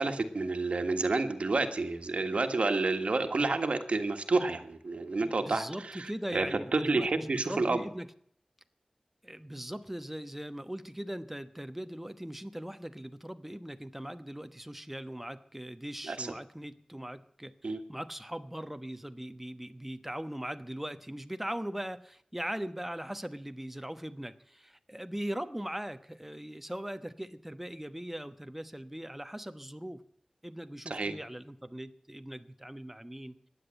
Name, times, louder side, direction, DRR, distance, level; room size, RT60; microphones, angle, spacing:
voice 1, 0.0-7.8 16.1-16.3 17.6-17.8 30.9-31.1, right 3 dB, 80° right, 7 dB, 1.6 m, -30 dB
voice 2, 5.2-8.1 9.2-30.0 30.4-33.4, right 1 dB, 10° right, 10 dB, 1.1 m, -40 dB
15.0 x 10.0 x 8.9 m, 0.64 s
wide cardioid pair, 70°, 2 cm